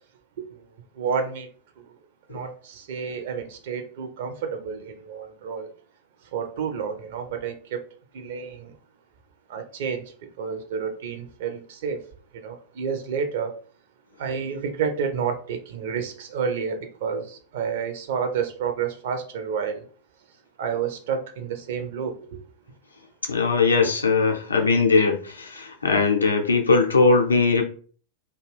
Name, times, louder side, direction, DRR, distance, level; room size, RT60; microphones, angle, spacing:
voice 1, 1.0-1.5 2.3-2.5 2.9-5.7 6.3-7.8 8.1-8.7 9.5-10.0 10.4-12.0 12.4-13.5 14.2-17.2 17.5-19.8 20.6-22.4 23.8-23.9, right 6 dB, 55° right, 5 dB, 0.5 m, -29 dB
voice 2, 23.2-27.6, left 4 dB, 75° left, 3 dB, 0.5 m, -20 dB
2.3 x 2.3 x 3.2 m, 0.43 s
figure-of-eight pair, 90°, 0 cm